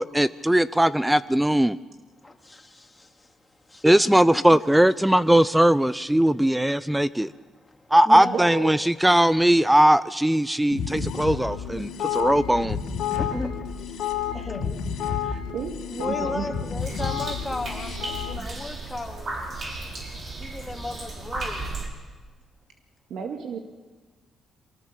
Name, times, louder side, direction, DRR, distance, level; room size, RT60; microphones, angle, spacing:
voice 1, 0.0-1.8 3.8-7.3 7.9-12.8, right 1 dB, 5° right, 16 dB, 0.6 m, -19 dB
voice 2, 2.2-4.5 6.2-6.3 7.3-8.4 11.8-12.2 12.5-12.7 13.1-13.5 13.8-14.0 14.3-15.4 15.9-19.4 20.4-21.6, left 2 dB, 20° left, 2 dB, 3.0 m, -36 dB
voice 3, 8.2-8.8 15.5-16.5 18.1-18.3 23.1-23.6, right 6 dB, 75° right, 3 dB, 1.9 m, -32 dB
sound 1, 10.7-18.4, left 7 dB, 80° left, 3.2 m, -30 dB
sound 2, 16.8-21.9, right 2 dB, 50° right, 6.2 m, -35 dB
24.5 x 19.0 x 6.8 m, 1.4 s
supercardioid pair, 70°, 0 cm